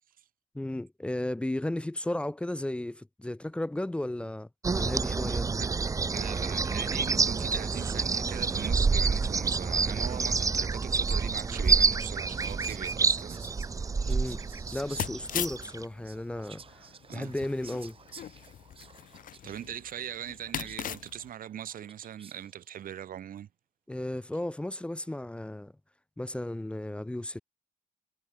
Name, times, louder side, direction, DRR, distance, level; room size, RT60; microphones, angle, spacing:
voice 1, 0.5-4.5 4.7-5.5 14.1-14.4 14.7-16.8 17.1-18.0 23.9-25.7 26.2-27.4, left 1 dB, 10° left, 1.1 m, -34 dB
sound 1, 4.6-15.8, right 4 dB, 25° right, 0.8 m, -28 dB
voice 2, 6.1-13.4 17.1-17.3 19.4-23.5, right 10 dB, 85° right, 5.2 m, -40 dB
Whispering, 11.2-22.6, right 6 dB, 40° right, 6.0 m, -53 dB
sound 2, 13.5-21.3, left 10 dB, 75° left, 1.4 m, -41 dB
wide cardioid pair, 170°, 14 cm